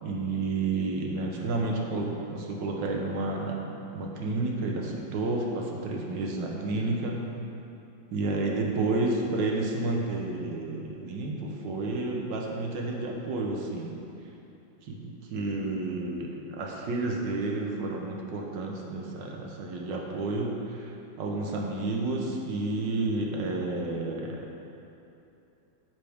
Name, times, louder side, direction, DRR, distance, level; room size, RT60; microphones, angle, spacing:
voice 1, 0.0-3.6 3.9-7.2 8.1-13.9 14.8-20.5 21.2-24.5, right 2 dB, 70° right, -1 dB, 1.6 m, -30 dB
9.2 x 7.4 x 3.5 m, 2.8 s
omnidirectional pair, 2.1 m